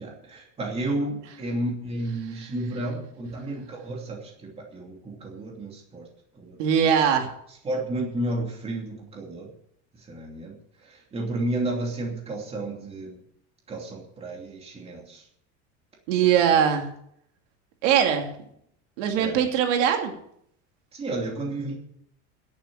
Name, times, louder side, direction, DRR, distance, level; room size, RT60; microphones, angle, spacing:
voice 1, 0.0-6.1 6.3-6.6 7.6-9.5 10.0-10.6 10.8-13.2 13.7-15.2 16.5-16.6 19.2-19.4 20.9-21.7, right 1 dB, 15° right, 0 dB, 2.8 m, -32 dB
voice 2, 6.6-7.3 16.1-16.9 17.8-18.3 19.0-20.1, right 8 dB, 85° right, 4 dB, 2.5 m, -21 dB
11.5 x 8.8 x 8.7 m, 0.71 s
cardioid pair, 175°, 35 cm